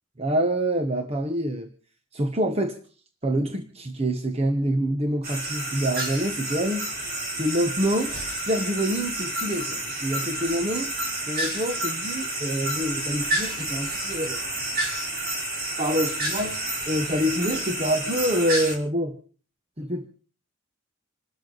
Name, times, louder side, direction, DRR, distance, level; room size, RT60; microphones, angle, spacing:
voice 1, 0.2-1.7 2.1-2.8 3.2-6.9 7.4-8.1 8.4-10.9 11.3-14.4 15.8-19.2 19.8-20.1, equal, 30° right, 5 dB, 1.2 m, -26 dB
sound 1, 5.2-18.8, right 1 dB, 45° right, 4.2 m, -30 dB
27.5 x 12.5 x 4.0 m, 0.40 s
head